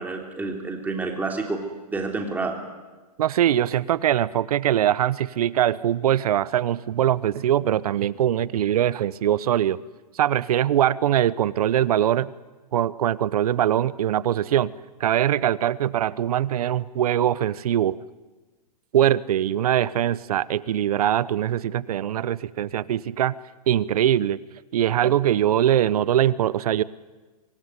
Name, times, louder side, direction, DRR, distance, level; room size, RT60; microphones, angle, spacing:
voice 1, 0.0-1.6 1.9-2.5, right 3 dB, 10° right, 2 dB, 3.4 m, -28 dB
voice 2, 3.2-9.8 10.1-12.3 12.7-14.7 15.0-18.0 18.9-23.4 23.7-24.4 24.7-26.8, right 11 dB, 65° right, 19 dB, 0.9 m, -22 dB
25.0 x 19.0 x 9.7 m, 1.2 s
hypercardioid pair, 140°, 20 cm